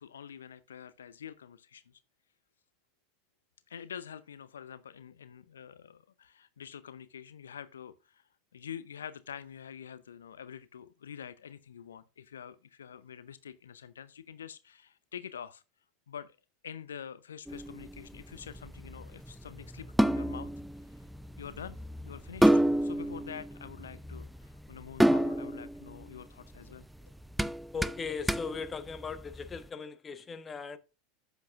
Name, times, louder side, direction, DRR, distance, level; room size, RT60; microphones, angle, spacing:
voice 1, 0.0-2.0 3.7-8.2 8.5-15.6 16.1-16.4 16.6-20.5 20.9-21.0 21.4-26.9, left 8 dB, 75° left, 0.6 m, -46 dB
sound 1, 17.5-29.6, right 1 dB, 5° right, 0.5 m, -30 dB
voice 2, 27.7-30.8, left 5 dB, 20° left, 1.1 m, -38 dB
11.5 x 8.1 x 2.4 m
figure-of-eight pair, 85°, 0 cm